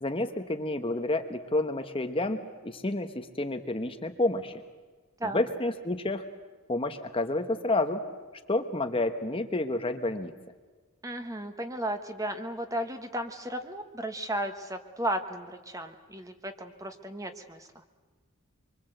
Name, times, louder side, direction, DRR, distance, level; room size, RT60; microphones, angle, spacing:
voice 1, 0.0-4.6 5.3-6.2 6.7-8.0 8.5-10.3, left 2 dB, 25° left, 7 dB, 1.1 m, -29 dB
voice 2, 11.0-17.8, right 1 dB, 15° right, 7 dB, 1.4 m, -34 dB
25.0 x 24.5 x 8.0 m, 1.4 s
head